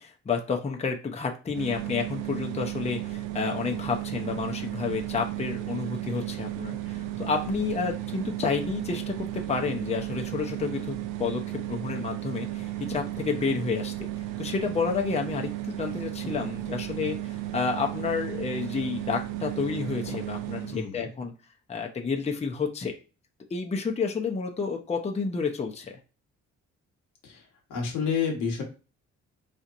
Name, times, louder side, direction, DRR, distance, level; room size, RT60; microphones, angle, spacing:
voice 1, 0.0-13.9 14.4-21.3 21.7-22.9 23.5-26.0, left 5 dB, 20° left, 2 dB, 0.6 m, -30 dB
sound 1, 1.5-20.8, right 14 dB, 85° right, 0.5 m, -34 dB
voice 2, 20.7-21.1 27.2-27.4 27.7-28.6, left 6 dB, 90° left, 1 dB, 1.2 m, -29 dB
4.2 x 2.8 x 2.5 m, 0.34 s
cardioid pair, 90°, 30 cm